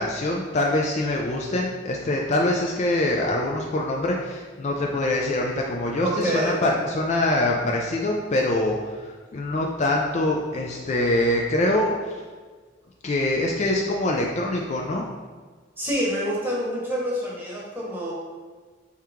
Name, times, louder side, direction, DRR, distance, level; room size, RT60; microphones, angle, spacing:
voice 1, 0.0-12.2 13.0-15.0, left 1 dB, 35° left, -1 dB, 0.3 m, -24 dB
voice 2, 6.0-6.6 15.8-18.1, equal, 10° right, -6 dB, 1.0 m, -26 dB
4.7 x 2.8 x 3.5 m, 1.4 s
head